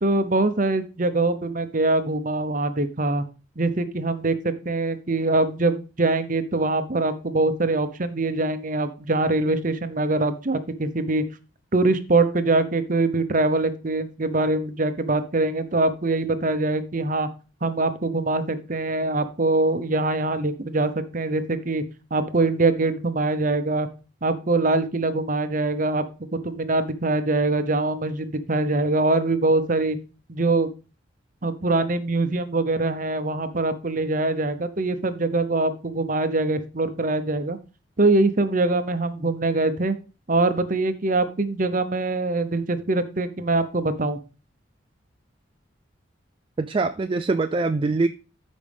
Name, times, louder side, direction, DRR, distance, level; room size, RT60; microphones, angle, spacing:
voice 1, 0.0-3.2 3.6-11.2 11.7-17.3 17.6-21.8 22.1-23.9 24.2-30.0 30.3-30.7 31.4-37.6 38.0-40.0 40.3-44.2, right 2 dB, 40° right, 11 dB, 0.9 m, -23 dB
voice 2, 46.6-48.1, right 3 dB, 25° right, 9 dB, 0.3 m, -23 dB
13.5 x 5.2 x 3.5 m, 0.33 s
head